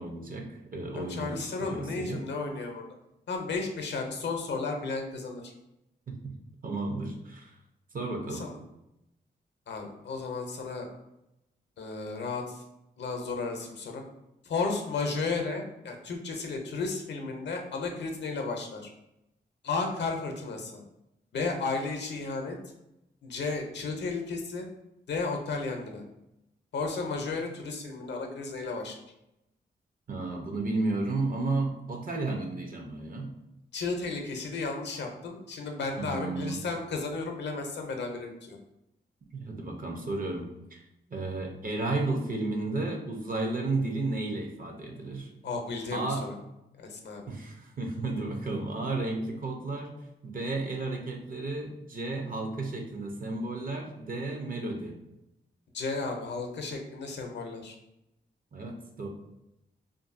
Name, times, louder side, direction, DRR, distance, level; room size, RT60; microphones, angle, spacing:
voice 1, 0.0-2.2 6.1-6.3 6.6-7.5 7.9-8.4 30.1-33.3 36.0-36.6 39.3-40.4 40.7-40.8 41.1-45.3 45.9-46.3 47.3-49.9 50.2-54.9 58.5-59.1, right 2 dB, 50° right, 2 dB, 0.6 m, -33 dB
voice 2, 0.9-2.8 3.3-5.5 8.3-8.6 9.7-10.9 11.8-12.6 13.0-14.0 14.4-18.9 19.6-20.8 21.3-22.6 23.2-24.7 25.1-26.0 26.7-28.9 33.7-38.6 45.4-46.3 46.8-47.2 55.7-57.8, left 4 dB, 70° left, 3 dB, 0.6 m, -33 dB
2.6 x 2.6 x 2.5 m, 0.90 s
cardioid pair, 65°, 19 cm